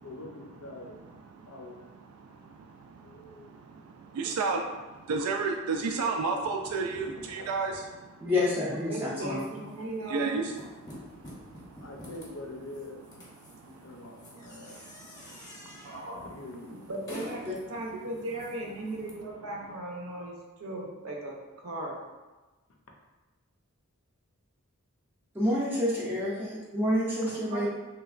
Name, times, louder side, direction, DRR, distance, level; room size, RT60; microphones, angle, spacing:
voice 1, 0.0-1.9 3.0-3.6 7.4-7.5 11.8-13.0 13.6-14.9 16.2-16.7 27.2-27.3, left 2 dB, 85° left, 1 dB, 0.6 m, -45 dB
voice 2, 2.2-7.7 10.1-10.5 11.1-11.8 13.4-13.7 14.7-15.5, right 4 dB, 90° right, 6 dB, 0.3 m, -33 dB
voice 3, 8.2-9.6 25.3-27.7, left 1 dB, 10° right, -8 dB, 0.4 m, -28 dB
voice 4, 8.9-10.4 15.8-16.2 16.7-17.4 17.7-20.3 20.6-22.0 27.5-27.7, right 1 dB, 70° right, -1 dB, 0.7 m, -37 dB
sound 1, 9.3-19.1, equal, 15° left, 0.7 m, -49 dB
3.2 x 2.9 x 2.4 m, 1.2 s
head